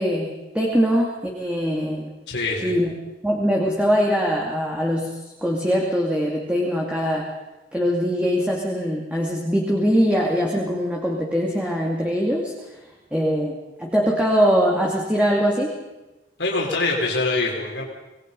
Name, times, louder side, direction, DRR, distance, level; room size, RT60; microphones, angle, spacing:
voice 1, 0.0-2.1 2.6-2.9 3.2-7.3 7.7-15.7, equal, 5° right, -2 dB, 2.6 m, -22 dB
voice 2, 2.3-2.7 16.4-17.8, left 3 dB, 85° left, -2 dB, 4.8 m, -24 dB
26.5 x 20.0 x 5.5 m, 1.1 s
head